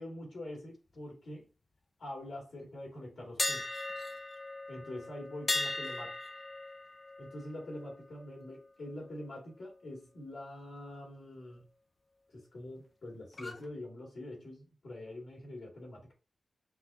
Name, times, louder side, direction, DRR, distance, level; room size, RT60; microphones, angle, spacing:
voice 1, 0.0-1.5 2.0-3.8 4.7-6.3 7.2-11.7 12.3-16.1, left 1 dB, 90° left, 1.8 m, -45 dB
sound 1, 3.4-9.3 9.6-9.8 13.3-13.7, left 2 dB, 40° left, 0.5 m, -38 dB
5.6 x 2.1 x 2.5 m
wide cardioid pair, 100°, 0 cm